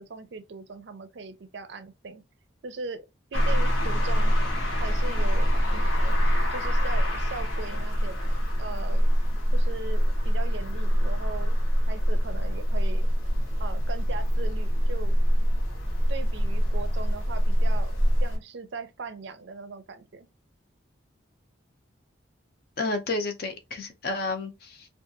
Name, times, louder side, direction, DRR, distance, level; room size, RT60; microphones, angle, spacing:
voice 1, 0.0-2.2 2.6-3.0 3.3-4.4 4.8-6.2 6.5-9.1 9.5-13.1 13.6-15.2 16.1-17.9 18.2-20.3, right 4 dB, 60° right, 0.4 m, -39 dB
sound 1, 3.3-18.4, equal, 75° left, 0.9 m, -24 dB
voice 2, 22.8-24.9, left 2 dB, 50° left, 0.5 m, -31 dB
2.6 x 2.3 x 2.7 m
head